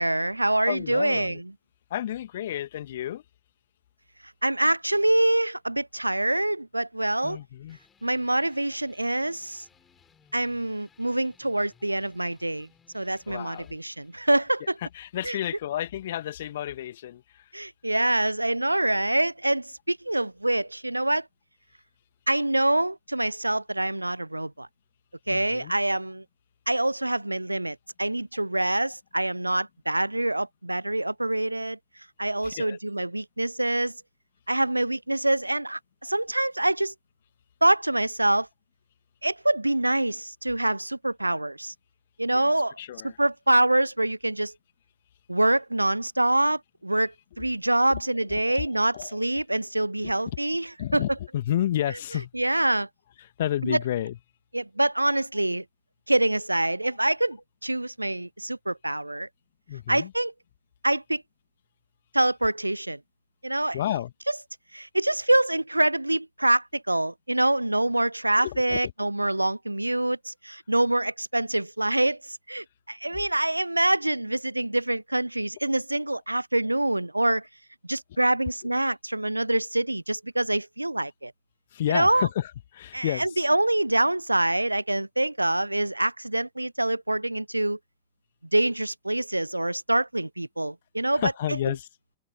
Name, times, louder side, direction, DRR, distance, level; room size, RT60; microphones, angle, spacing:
voice 1, 0.0-1.4 4.4-7.4 8.0-9.6 10.3-12.7 12.9-14.7 15.2-15.4 17.5-21.2 22.3-24.7 25.3-26.2 26.7-31.8 32.2-33.9 34.5-36.9 37.6-38.5 39.2-41.7 42.2-42.8 43.0-44.5 45.3-51.0 52.3-52.9 53.6-53.8 54.5-55.6 56.1-59.3 59.9-60.3 60.8-61.2 62.1-63.0 63.4-63.8 64.7-77.5 77.8-81.3 81.9-82.3 82.9-87.8 88.5-91.6, right 1 dB, 85° right, 0.6 m, -25 dB
voice 2, 0.6-1.4 1.9-3.2 7.2-7.8 13.3-13.8 14.8-17.5 25.3-25.7 32.4-32.8 42.3-42.5 42.8-43.2 48.3-48.7 48.9-49.4 50.0-50.1 50.8-52.3 53.2-54.2 59.7-60.1 63.7-64.1 68.4-68.9 81.7-83.5 91.1-91.9, left 12 dB, 60° left, 1.6 m, -31 dB
sound 1, 7.7-16.7, left 6 dB, 20° left, 6.9 m, -63 dB
open air
figure-of-eight pair, 90°, 0 cm